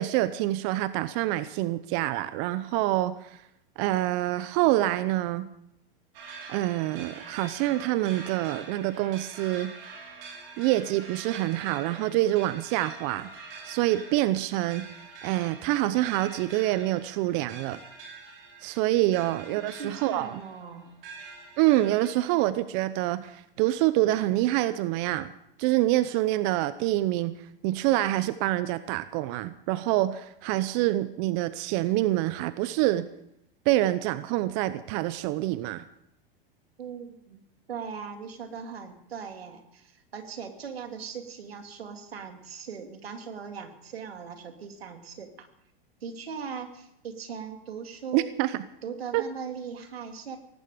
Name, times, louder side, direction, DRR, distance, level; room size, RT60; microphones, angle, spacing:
voice 1, 0.0-3.4 3.8-5.5 6.5-9.7 10.6-13.3 13.6-14.9 15.2-17.8 18.6-20.4 21.6-25.3 25.6-27.3 27.6-33.1 33.7-35.8 48.1-48.6 49.1-49.2, right 15 dB, 45° right, 14 dB, 0.8 m, -26 dB
sound 1, 6.1-22.4, right 4 dB, 65° right, 6.1 m, -45 dB
voice 2, 19.5-20.9 36.8-37.4 37.7-45.5 46.0-48.3 48.8-50.4, right 6 dB, 90° right, 6 dB, 2.5 m, -39 dB
18.0 x 15.0 x 5.1 m, 0.81 s
hypercardioid pair, 110°, 30 cm